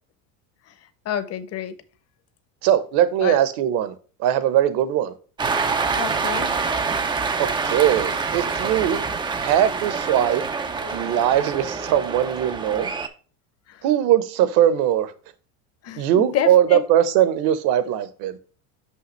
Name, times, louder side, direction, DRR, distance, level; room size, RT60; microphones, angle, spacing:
voice 1, 1.0-1.7 3.2-3.4 6.0-6.5 13.7-13.8 15.8-16.8, left 9 dB, 35° left, 0.8 m, -28 dB
voice 2, 2.6-3.9 4.2-5.1 7.4-9.1 9.4-10.4 10.9-12.9 13.8-15.1 16.0-18.4, right 11 dB, 60° right, 1.0 m, -20 dB
Cheering, 5.4-13.1, right 4 dB, 10° right, 0.3 m, -26 dB
5.9 x 5.6 x 3.1 m
cardioid pair, 135°, 43 cm